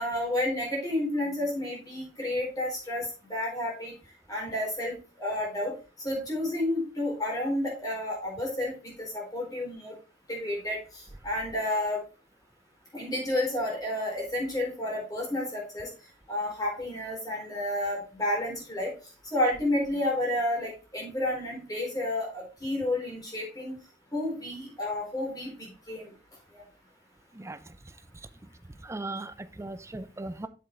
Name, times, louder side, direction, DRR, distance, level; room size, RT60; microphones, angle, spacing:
voice 1, 0.0-3.9 4.3-10.0 10.3-12.0 12.9-15.9 16.3-18.9 19.2-23.8 24.1-26.1 26.5-26.6, left 1 dB, 20° left, -2 dB, 3.8 m, -31 dB
voice 2, 28.9-30.5, right 2 dB, 15° right, 13 dB, 0.5 m, -37 dB
7.9 x 7.4 x 3.1 m, 0.34 s
head